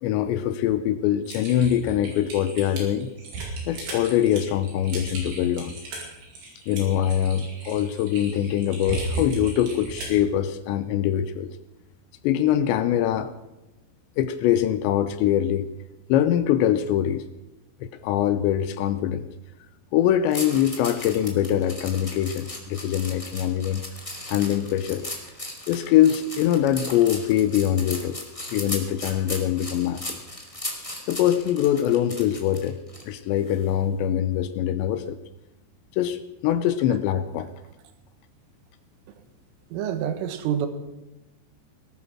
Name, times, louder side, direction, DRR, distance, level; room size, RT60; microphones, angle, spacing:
voice 1, 0.0-3.1 3.7-5.7 6.7-11.5 12.2-13.3 14.2-15.7 16.1-17.2 17.8-19.3 19.9-23.8 24.3-25.1 25.7-28.2 28.5-30.2 31.1-32.8 33.1-35.2 35.9-37.5, left 11 dB, 80° left, 12 dB, 2.8 m, -23 dB
Typing, 1.3-10.2, right 3 dB, 60° right, 6.5 m, -35 dB
sound 1, 20.3-33.0 33.5-33.7, left 1 dB, 35° left, 0.5 m, -36 dB
voice 2, 39.7-40.7, right 9 dB, 90° right, 9 dB, 3.9 m, -27 dB
18.5 x 12.0 x 6.1 m, 0.99 s
omnidirectional pair, 5.6 m